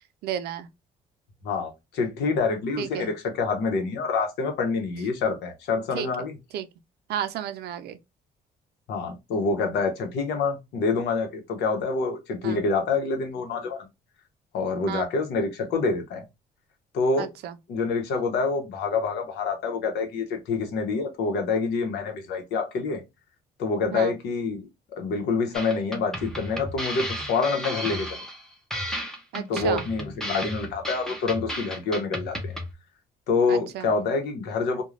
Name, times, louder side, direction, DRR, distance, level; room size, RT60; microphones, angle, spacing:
voice 1, 0.2-0.7 2.8-3.1 5.9-6.1 6.5-6.7 7.1-8.0 12.4-12.6 14.9-15.1 17.2-17.5 23.9-24.1 29.3-29.9 33.5-33.9, right 10 dB, 75° right, 0.4 m, -32 dB
voice 2, 1.4-6.4 8.9-13.9 14.5-16.2 16.9-17.3 17.7-23.0 23.6-24.7 24.9-28.2 29.5-32.5 33.3-34.8, left 4 dB, 90° left, 0.8 m, -27 dB
sound 1, 25.5-32.7, equal, 5° left, 0.5 m, -34 dB
2.4 x 2.2 x 3.1 m
cardioid pair, 145°, 17 cm